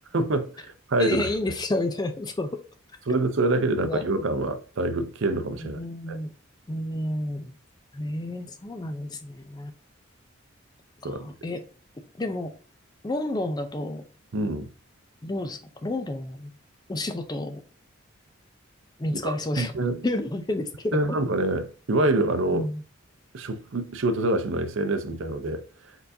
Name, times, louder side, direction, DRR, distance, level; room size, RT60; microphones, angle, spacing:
voice 1, 0.1-1.3 3.1-5.8 6.1-6.2 11.0-11.3 14.3-14.7 19.2-20.0 20.9-22.7 23.3-25.6, right 2 dB, 65° right, 0.6 m, -26 dB
voice 2, 1.0-2.6 3.8-4.0 5.6-6.3 6.7-7.5 7.9-9.7 11.0-11.6 12.2-12.5 13.0-14.1 15.2-16.5 16.9-17.6 19.0-19.7 20.0-21.0 22.5-22.8, left 1 dB, 20° left, 0.4 m, -30 dB
4.5 x 3.8 x 2.6 m
head